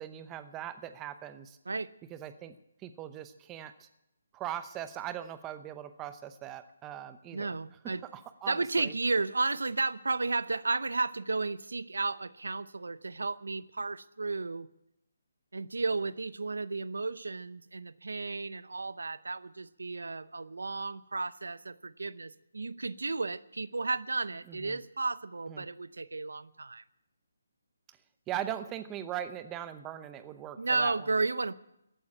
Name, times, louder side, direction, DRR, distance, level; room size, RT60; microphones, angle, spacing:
voice 1, 0.0-1.6 2.1-2.6 2.8-3.9 4.3-7.5 8.1-8.9 24.5-24.8 25.5-25.7 28.3-31.0, right 11 dB, 15° right, 11 dB, 0.8 m, -40 dB
voice 2, 7.3-8.0 8.5-14.7 15.5-26.8 30.6-31.5, right 3 dB, 90° right, 16 dB, 0.7 m, -33 dB
14.5 x 8.8 x 9.8 m, 0.84 s
hypercardioid pair, 160°, 0 cm